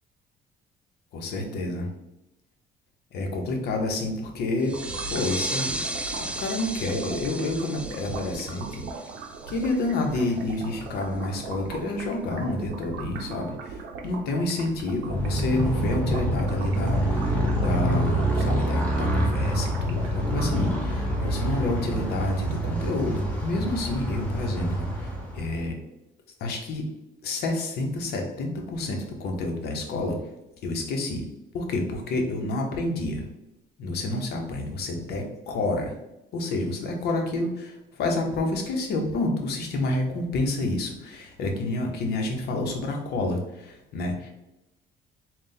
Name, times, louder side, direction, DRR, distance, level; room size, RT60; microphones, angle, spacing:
voice 1, 1.1-1.9 3.1-8.8 9.5-25.7 26.4-26.8 27.2-30.2 30.6-31.2 31.5-33.3 33.8-36.0 36.3-44.3, left 2 dB, 70° left, 2 dB, 0.9 m, -29 dB
sound 1, 4.6-10.0, right 1 dB, 5° right, 0.4 m, -35 dB
sound 2, 4.7-21.1, right 4 dB, 85° right, 0.6 m, -39 dB
Motorcycle, 15.0-25.6, right 1 dB, 10° left, 1.1 m, -26 dB
3.9 x 2.4 x 3.9 m, 0.90 s
cardioid pair, 110°, 17 cm